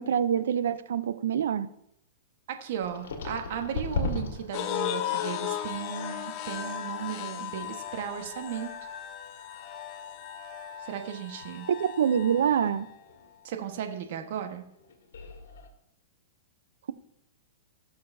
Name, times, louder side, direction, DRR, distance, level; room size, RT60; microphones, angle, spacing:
voice 1, 0.0-1.7 11.7-12.9, right 8 dB, 80° right, 13 dB, 0.6 m, -25 dB
voice 2, 2.6-8.7 10.8-11.7 13.4-14.6, right 8 dB, 60° right, 5 dB, 1.3 m, -36 dB
sound 1, 2.8-13.7 13.9-14.3 14.7-15.7, left 3 dB, 80° left, 1.8 m, -40 dB
sound 2, 4.5-12.9, left 11 dB, 45° left, 1.0 m, -36 dB
17.0 x 6.7 x 2.7 m, 0.75 s
hypercardioid pair, 130°, 0 cm